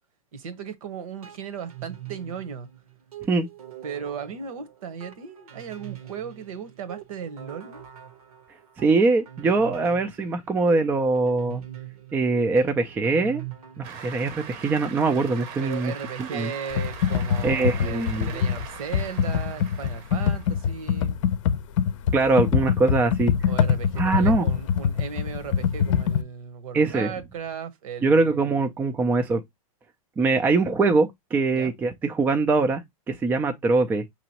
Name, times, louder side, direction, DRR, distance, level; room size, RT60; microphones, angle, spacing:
voice 1, 0.3-2.7 3.8-7.8 15.6-21.2 23.5-28.7 31.5-31.7, right 7 dB, 65° right, 1.0 m, -36 dB
sound 1, 1.2-14.2, right 13 dB, 90° right, 1.3 m, -43 dB
voice 2, 8.8-11.6 12.1-13.4 13.8-15.9 16.2-16.5 17.4-18.4 22.1-23.3 24.0-24.5 26.7-27.1 28.0-29.4 30.2-32.8 33.1-34.0, right 3 dB, 10° right, 0.3 m, -22 dB
Cheering / Applause, 13.8-20.7, right 7 dB, 40° right, 0.8 m, -41 dB
Computer keyboard, 16.7-26.2, left 7 dB, 55° left, 0.6 m, -24 dB
5.9 x 2.9 x 2.8 m
hypercardioid pair, 140°, 19 cm